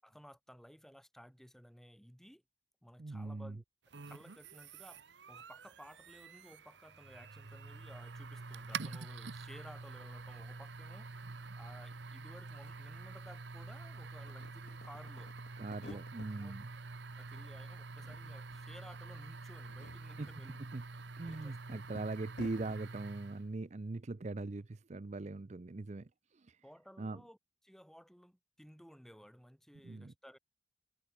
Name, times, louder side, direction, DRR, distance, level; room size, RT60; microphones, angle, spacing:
voice 1, 0.0-2.4 2.8-3.6 4.1-15.3 15.8-16.0 16.4-16.6 17.2-20.6 21.2-21.6 26.6-27.4 27.6-30.4, equal, ahead, 6.8 m, -56 dB
voice 2, 3.0-3.6 15.6-16.7 20.2-20.3 20.7-20.8 21.2-26.6 27.0-27.2 29.8-30.1, right 2 dB, 40° right, 0.5 m, -41 dB
sound 1, 3.9-23.5, right 4 dB, 75° right, 1.0 m, -47 dB
sound 2, 12.4-12.5 12.7-13.8 14.1-16.3 16.7-17.5 17.7-18.6 18.9-19.0 19.5-22.8, left 3 dB, 65° left, 0.7 m, -55 dB
head